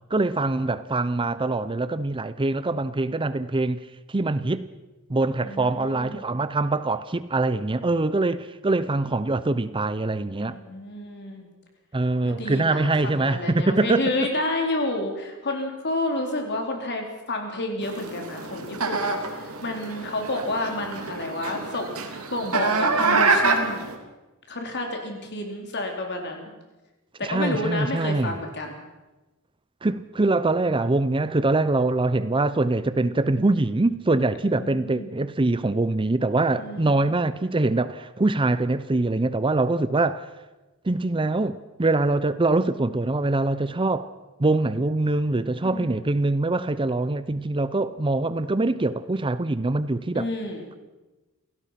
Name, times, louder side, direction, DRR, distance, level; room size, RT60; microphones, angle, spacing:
voice 1, 0.1-4.6 5.1-10.6 11.9-14.0 27.2-28.4 29.8-40.3 40.8-44.1 44.4-50.3, right 2 dB, 25° right, 0.6 m, -24 dB
voice 2, 5.4-6.2 10.4-11.5 12.2-23.9 24.5-26.5 27.2-28.8 34.5-35.1 36.6-37.0 45.6-46.0 50.1-50.7, left 1 dB, 50° left, 4.0 m, -30 dB
sound 1, 17.8-24.0, right 3 dB, 70° right, 2.9 m, -26 dB
28.0 x 17.0 x 5.9 m
head